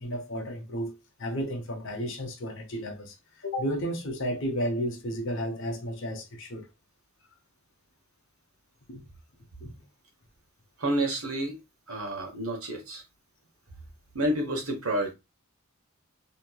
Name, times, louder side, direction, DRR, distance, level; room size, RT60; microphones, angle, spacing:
voice 1, 0.0-6.7 8.9-9.0 9.6-9.8, equal, 60° left, 0.8 m, -33 dB
voice 2, 10.8-11.6 11.9-13.0 14.1-15.1, right 1 dB, 80° right, 1.1 m, -29 dB
2.9 x 2.9 x 2.2 m
head